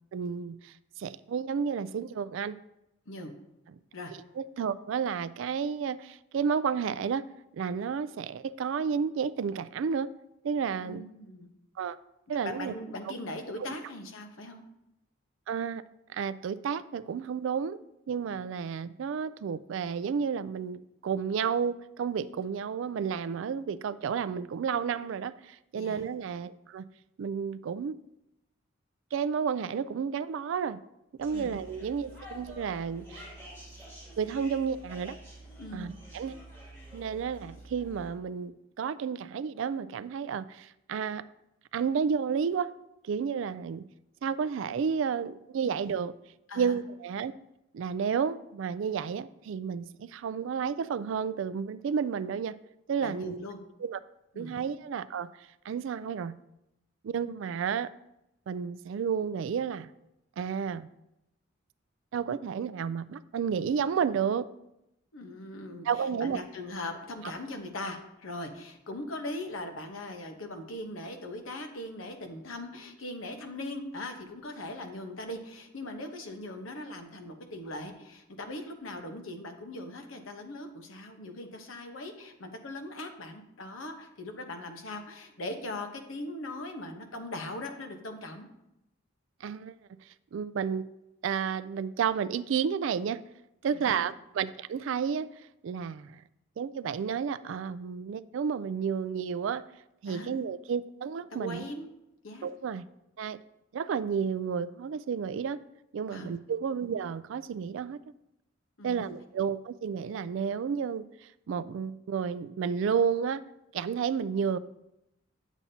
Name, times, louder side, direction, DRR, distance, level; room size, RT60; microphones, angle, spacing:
voice 1, 0.1-2.6 4.4-7.2 7.5-10.1 10.4-11.0 11.8-12.0 12.3-12.7 13.1-13.2 13.6-13.7 15.5-15.8 16.1-17.8 18.1-26.9 27.2-27.9 29.1-30.8 31.2-33.3 34.2-35.2 35.7-36.4 36.9-41.2 41.7-42.7 43.0-43.8 44.2-46.1 46.6-47.3 47.7-52.6 52.9-53.4 53.8-54.0 54.4-55.3 55.7-56.3 57.0-57.9 58.5-59.9 60.4-60.9 62.1-64.5 65.8-66.4 89.4-89.8 90.3-90.9 91.2-93.2 93.6-95.3 95.6-96.2 96.6-99.6 100.0-101.6 102.4-102.9 103.2-103.4 103.7-105.6 105.9-108.0 108.8-113.4 113.7-114.6, right 6 dB, 65° right, 16 dB, 0.3 m, -31 dB
voice 2, 10.8-11.5 12.3-14.6 25.7-26.0 31.3-31.5 35.6-35.9 46.5-46.8 53.0-53.6 54.3-54.5 65.1-88.5 93.7-94.1 100.1-100.4 101.3-101.9 102.2-102.5 106.1-106.3 108.8-109.1, left 1 dB, 75° left, 5 dB, 1.1 m, -40 dB
sound 1, 31.2-38.1, right 1 dB, 15° left, 2.4 m, -48 dB
9.2 x 7.2 x 2.8 m, 0.86 s
head